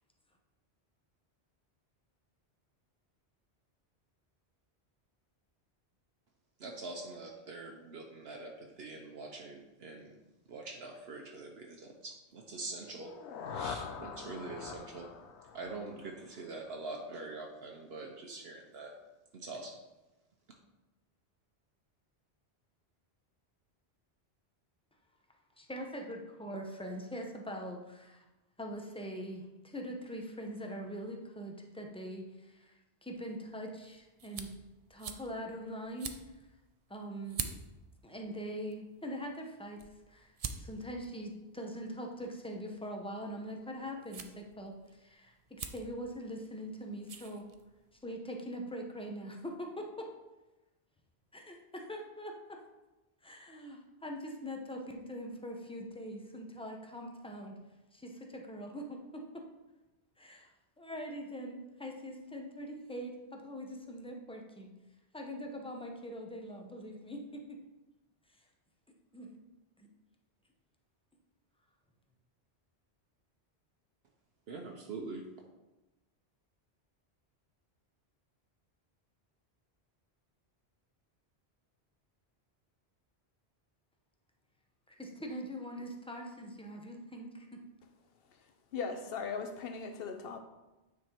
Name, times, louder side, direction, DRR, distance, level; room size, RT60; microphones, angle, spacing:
voice 1, 6.6-10.1 10.5-13.1 13.5-15.1 15.5-18.9 19.3-19.7 74.5-75.2, right 3 dB, 70° right, 1 dB, 1.0 m, -44 dB
sound 1, 12.9-16.8, left 6 dB, 85° left, 0.9 m, -44 dB
voice 2, 25.6-28.2 28.6-32.7 33.0-34.5 34.9-36.2 36.9-37.4 38.0-39.8 40.1-47.5 48.0-50.1 51.3-52.6 53.2-57.6 57.9-59.4 60.2-60.5 60.8-64.7 65.1-67.6 69.1-69.4 69.8-69.9 84.9-87.5, equal, 5° left, 2 dB, 0.7 m, -42 dB
sound 2, 33.3-48.0, right 6 dB, 50° right, 0.5 m, -48 dB
voice 3, 88.7-90.4, left 5 dB, 65° left, 6 dB, 0.9 m, -38 dB
9.1 x 3.7 x 4.4 m, 1.1 s
omnidirectional pair, 1.1 m